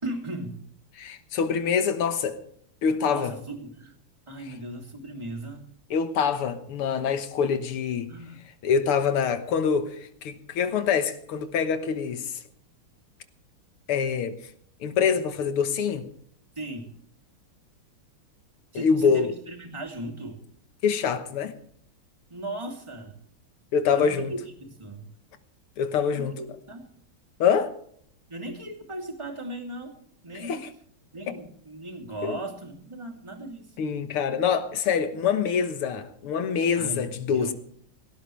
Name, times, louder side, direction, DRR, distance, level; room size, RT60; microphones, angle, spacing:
voice 1, 0.0-0.7 3.1-3.9 4.3-5.7 8.1-8.4 16.6-16.9 18.7-20.4 22.3-23.2 23.9-25.1 26.1-26.9 28.3-29.9 30.2-30.7 31.1-33.7 36.7-37.5, right 1 dB, 15° right, 2.9 m, -37 dB
voice 2, 1.0-2.4 2.8-3.3 4.5-4.6 5.9-8.1 8.6-12.4 13.9-14.4 14.8-16.1 18.7-19.3 20.8-21.5 23.7-24.3 25.8-26.4 27.4-27.7 30.3-30.7 31.3-31.4 32.2-32.4 33.8-37.5, left 6 dB, 90° left, 2.2 m, -25 dB
18.0 x 17.5 x 3.3 m
omnidirectional pair, 2.3 m